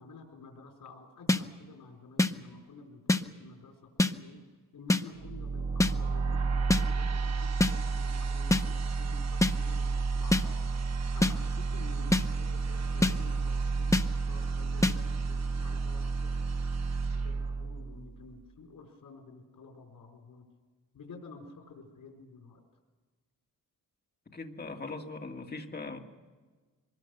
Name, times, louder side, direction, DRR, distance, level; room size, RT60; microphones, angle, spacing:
voice 1, 0.0-4.4 4.7-10.7 11.1-16.3 17.1-20.4 20.9-22.6 24.8-25.0, left 3 dB, 90° left, 0 dB, 4.8 m, -50 dB
sound 1, 1.3-1.4 2.2-2.3 3.1-3.2 4.0-4.1 4.9-5.0 5.8-5.9 6.7-6.8 7.6-7.7 8.5-8.6 9.4-9.5 10.3-10.4 11.2-11.3 12.1-12.2 13.0-13.1 13.9-14.0 14.8-14.9, left 2 dB, 10° left, 0.7 m, -24 dB
sound 2, 5.2-18.3, right 4 dB, 55° right, 1.1 m, -31 dB
voice 2, 24.3-26.0, left 3 dB, 30° left, 2 dB, 2.1 m, -40 dB
24.5 x 20.5 x 6.7 m, 1.3 s
wide cardioid pair, 140°, 33 cm